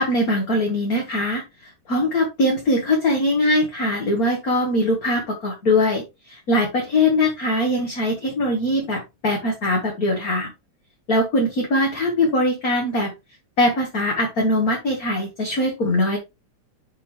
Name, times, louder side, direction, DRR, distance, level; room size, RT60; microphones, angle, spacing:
voice 1, 0.0-10.5 11.1-13.1 13.6-16.2, left 1 dB, 35° left, 0 dB, 1.6 m, -21 dB
10.0 x 4.1 x 3.3 m, 0.24 s
omnidirectional pair, 3.4 m